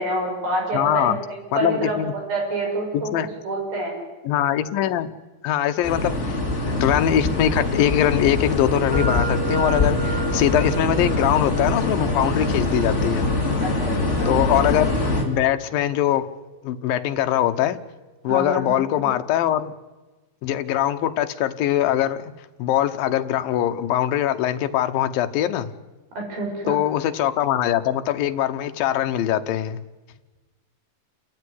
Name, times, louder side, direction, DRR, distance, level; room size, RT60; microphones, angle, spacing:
voice 1, 0.0-3.1 3.4-4.0 13.6-14.3 18.3-19.1 26.3-26.8, right 1 dB, 80° right, 0 dB, 8.6 m, -27 dB
voice 2, 0.7-1.2 1.5-2.1 2.9-3.3 4.3-5.1 5.4-6.4 6.6-13.3 14.3-14.9 15.2-16.3 16.6-17.8 18.2-19.7 20.4-22.2 22.6-25.7 26.7-29.8, left 11 dB, 75° left, 8 dB, 2.7 m, -22 dB
sound 1, 5.8-15.2, left 2 dB, 20° left, 3.3 m, -23 dB
sound 2, 8.9-16.8, right 4 dB, 25° right, 3.2 m, -35 dB
29.5 x 15.0 x 9.7 m, 1.2 s
omnidirectional pair, 4.2 m